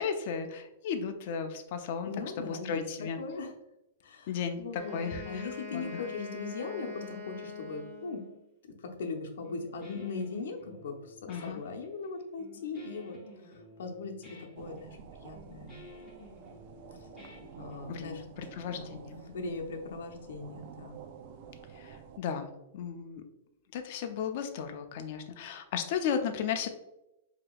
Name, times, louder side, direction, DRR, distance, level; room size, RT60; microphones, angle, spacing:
voice 1, 0.0-3.2 4.3-6.0 11.3-11.6 17.9-19.1 21.7-23.2 23.7-26.7, left 7 dB, 50° left, 6 dB, 0.5 m, -35 dB
voice 2, 2.0-3.5 4.0-8.2 8.6-11.1 11.4-13.2 13.4-15.8 17.6-18.2 18.7-21.0, left 4 dB, 85° left, 3 dB, 0.7 m, -39 dB
Wind instrument woodwind instrument, 4.7-8.4, left 4 dB, 25° right, 0.8 m, -43 dB
Guitar, 9.4-18.1, left 2 dB, 10° left, 1.1 m, -52 dB
sound 1, 14.6-22.2, right 7 dB, 45° right, 0.3 m, -50 dB
5.0 x 2.9 x 2.3 m, 0.89 s
supercardioid pair, 160°, 0 cm